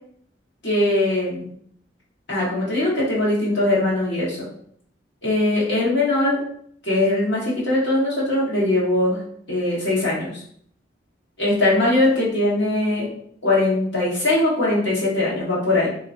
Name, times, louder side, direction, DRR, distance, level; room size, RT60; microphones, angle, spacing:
voice 1, 0.6-1.5 2.3-4.4 5.2-6.4 6.8-9.2 9.5-10.4 11.4-13.1 13.4-15.9, left 2 dB, 80° left, -6 dB, 1.4 m, -21 dB
3.5 x 2.8 x 2.5 m, 0.63 s
head